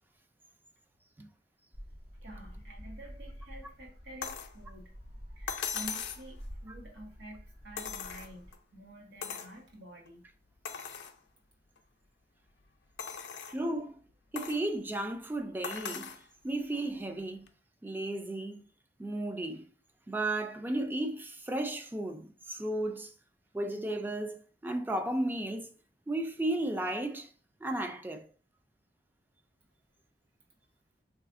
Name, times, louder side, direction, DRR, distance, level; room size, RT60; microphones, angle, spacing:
sound 1, 1.7-8.5, equal, 60° right, 1.1 m, -48 dB
voice 1, 2.2-4.9 5.4-10.3, right 1 dB, 90° right, 1.2 m, -49 dB
sound 2, 4.2-4.5 5.5-6.3 7.8-8.6 9.2-9.5 10.1-10.2 10.6-11.1 11.8-11.9 13.0-13.6 14.4-14.6 15.6-16.2 17.5-17.6, left 7 dB, 80° left, 0.4 m, -39 dB
voice 2, 13.5-14.0 14.3-16.2 16.4-17.5 17.8-18.6 19.0-19.7 20.1-23.1 23.5-25.7 26.1-27.3 27.6-28.3, right 1 dB, 10° right, 0.3 m, -34 dB
3.4 x 2.4 x 2.4 m
head